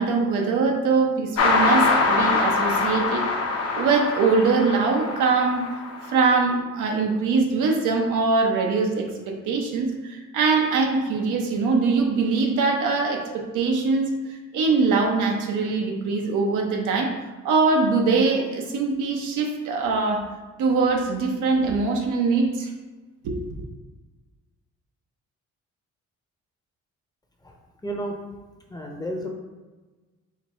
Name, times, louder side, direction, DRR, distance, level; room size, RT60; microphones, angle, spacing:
voice 1, 0.0-3.3 3.8-5.6 6.0-14.1 14.5-17.1 17.4-20.3 20.6-22.7 23.2-23.4, right 4 dB, 80° right, 1 dB, 0.8 m, -22 dB
sound 1, 1.4-6.2, left 3 dB, 55° left, 0.9 m, -23 dB
voice 2, 27.8-28.2 28.7-29.3, right 1 dB, 15° left, 1 dB, 0.7 m, -31 dB
4.7 x 2.3 x 4.2 m, 1.2 s
cardioid pair, 90°, 30 cm